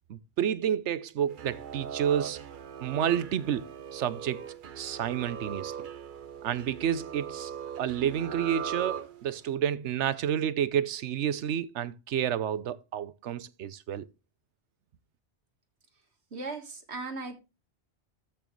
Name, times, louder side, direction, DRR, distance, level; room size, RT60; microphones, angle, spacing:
voice 1, 0.1-2.4 2.8-5.7 6.4-7.5 7.8-14.1, right 9 dB, 85° right, 1.0 m, -30 dB
sound 1, 1.3-9.5, right 8 dB, 50° right, 0.8 m, -40 dB
voice 2, 16.3-17.3, right 3 dB, 70° right, 1.9 m, -37 dB
13.5 x 6.2 x 3.0 m
omnidirectional pair, 1.2 m